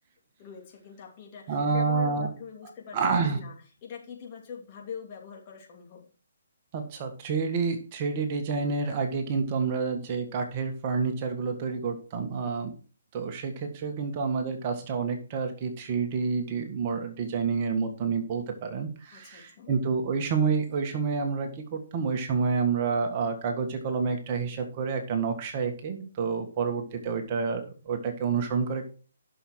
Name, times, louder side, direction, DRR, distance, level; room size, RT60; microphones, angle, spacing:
voice 1, 0.4-3.5 3.8-6.1 19.1-19.7, left 6 dB, 35° left, 0 dB, 3.0 m, -43 dB
voice 2, 1.5-2.3 2.9-3.4 6.7-12.7 13.1-28.8, right 5 dB, 35° right, 5 dB, 1.7 m, -29 dB
11.0 x 6.4 x 4.6 m, 0.38 s
hypercardioid pair, 145°, 0 cm